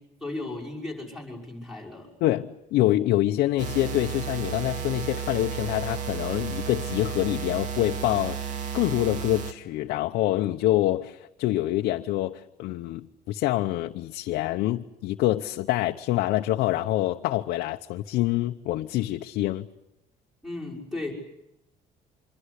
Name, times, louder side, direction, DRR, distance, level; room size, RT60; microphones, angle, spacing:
voice 1, 0.2-2.1 20.4-21.1, left 2 dB, ahead, 5.7 m, -35 dB
voice 2, 2.2-8.4 8.7-19.7, left 15 dB, 70° left, 0.9 m, -26 dB
sound 1, 3.6-9.5, right 8 dB, 50° right, 2.1 m, -33 dB
26.0 x 23.5 x 8.3 m
cardioid pair, 175°, 17 cm